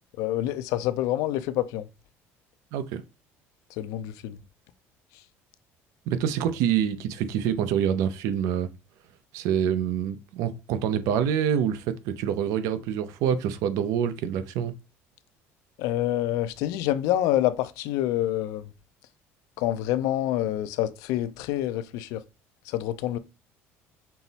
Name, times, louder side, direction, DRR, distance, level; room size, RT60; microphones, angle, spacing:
voice 1, 0.2-1.9 3.7-4.4 5.1-5.2 15.8-18.7 19.6-22.2 22.6-23.2, left 13 dB, 80° left, 0.5 m, -27 dB
voice 2, 2.7-3.0 6.1-8.7 9.3-14.7, right 9 dB, 75° right, 0.5 m, -26 dB
5.6 x 2.0 x 4.0 m
cardioid pair, 120°, 6 cm